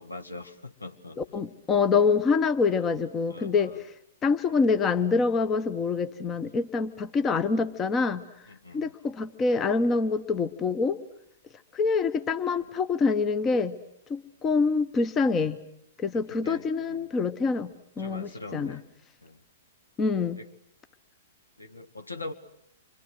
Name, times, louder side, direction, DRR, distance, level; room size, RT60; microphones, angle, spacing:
voice 1, 0.0-1.4 2.7-2.9 3.3-3.8 7.1-7.2 8.5-8.9 12.6-12.7 16.1-17.1 18.0-18.8 19.2-19.4 20.4-20.5 21.6-22.3, left 2 dB, 80° left, 7 dB, 1.8 m, -43 dB
voice 2, 1.3-3.7 4.2-8.2 8.7-11.0 11.7-13.7 14.1-15.6 16.0-18.8 20.0-20.4, left 4 dB, 20° left, 11 dB, 1.0 m, -25 dB
29.5 x 25.0 x 6.4 m, 0.75 s
figure-of-eight pair, 110°, 0 cm